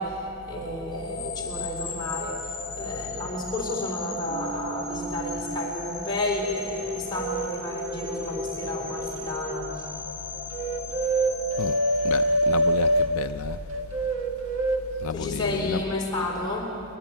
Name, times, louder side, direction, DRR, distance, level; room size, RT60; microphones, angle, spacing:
voice 1, 0.0-10.7 11.0-11.5 13.5-13.6 15.1-16.8, left 1 dB, 20° left, 3.9 m, -32 dB
sound 1, 0.9-13.1, left 4 dB, 40° left, 2.5 m, -37 dB
sound 2, 4.3-5.7 6.3-9.7 10.5-13.2 13.7-14.9, right 1 dB, 60° right, 1.6 m, -27 dB
voice 2, 12.0-13.6 15.0-15.8, left 6 dB, 75° left, 0.4 m, -31 dB
28.5 x 11.5 x 8.9 m
head